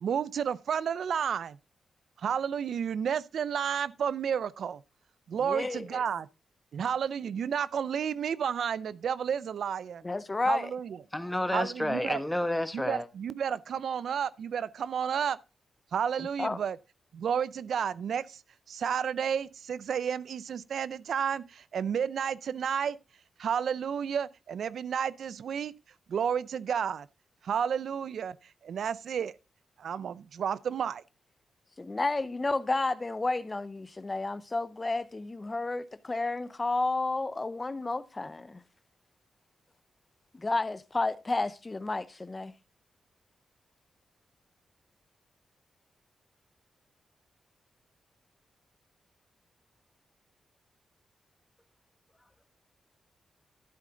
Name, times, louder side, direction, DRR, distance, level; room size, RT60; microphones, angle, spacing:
voice 1, 0.0-1.6 2.2-4.8 5.3-6.3 6.7-10.0 10.5-11.0 11.5-12.2 12.7-15.4 15.9-16.8 17.1-18.4 18.7-23.0 23.4-25.7 26.1-27.1 27.4-28.4 28.6-29.3 29.8-31.0, right 7 dB, 75° right, 0.4 m, -31 dB
voice 2, 5.4-6.0 10.0-10.7 16.2-16.6 31.8-38.6 40.3-42.5, left 2 dB, 30° left, 0.7 m, -31 dB
voice 3, 11.1-13.0, left 1 dB, 10° left, 1.2 m, -30 dB
12.5 x 7.6 x 3.7 m
cardioid pair, 75°, 0 cm